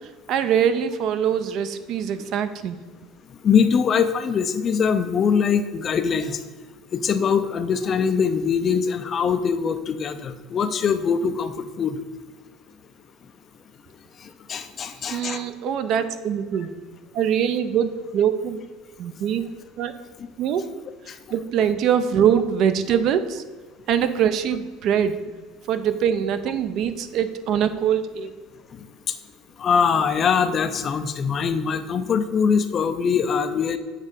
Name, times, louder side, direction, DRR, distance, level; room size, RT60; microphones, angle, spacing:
voice 1, 0.3-2.8 15.1-16.7 17.1-18.6 19.0-19.4 19.8-19.9 20.4-20.6 21.3-23.4 23.9-25.2 25.7-28.4, right 8 dB, 45° right, 11 dB, 0.5 m, -23 dB
voice 2, 3.4-6.4 6.9-12.0 14.2-15.5 21.1-21.2 29.6-33.8, left 6 dB, 25° left, 9 dB, 0.4 m, -22 dB
7.4 x 3.6 x 6.5 m, 1.4 s
cardioid pair, 170°, 0 cm